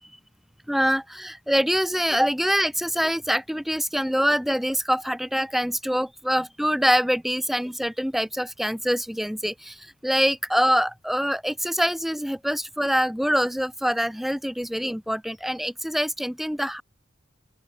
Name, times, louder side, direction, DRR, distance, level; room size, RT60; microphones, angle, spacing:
voice 1, 0.7-16.8, equal, ahead, 0.8 m, -25 dB
open air
head